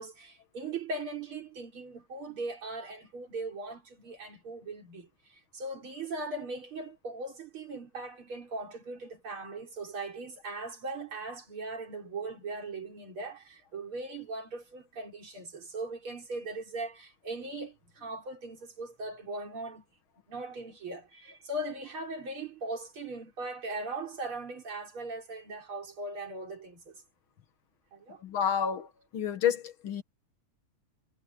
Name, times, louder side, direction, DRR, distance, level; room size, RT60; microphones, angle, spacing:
voice 1, 0.0-19.8 20.3-27.0 27.9-28.2, right 2 dB, 70° right, 5.1 m, -39 dB
voice 2, 28.2-28.9 29.1-30.0, left 8 dB, 70° left, 2.2 m, -29 dB
omnidirectional pair, 2.4 m